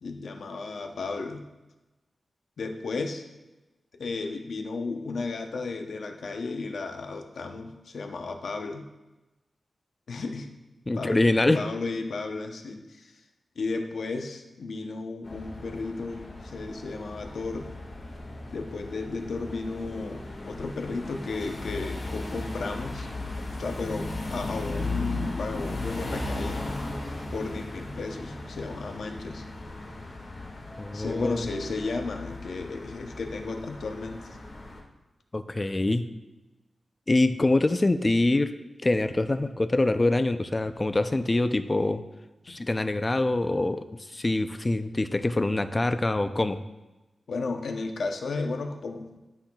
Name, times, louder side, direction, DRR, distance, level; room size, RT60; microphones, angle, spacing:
voice 1, 0.0-1.4 2.6-3.2 4.0-8.9 10.1-10.5 11.0-11.3 11.6-13.2 13.6-17.7 18.5-23.1 23.4-26.7 27.3-29.4 30.9-34.2 42.5-42.6 47.3-49.2, left 3 dB, 80° left, 4 dB, 0.8 m, -34 dB
voice 2, 10.9-11.6 30.8-31.5 35.3-36.1 37.1-38.5 38.8-42.0 42.5-46.6, left 2 dB, 25° left, 10 dB, 0.4 m, -25 dB
sound 1, 15.2-34.8, left 2 dB, 55° left, 1.8 m, -36 dB
11.5 x 5.7 x 2.3 m, 1.1 s
wide cardioid pair, 105°, 0 cm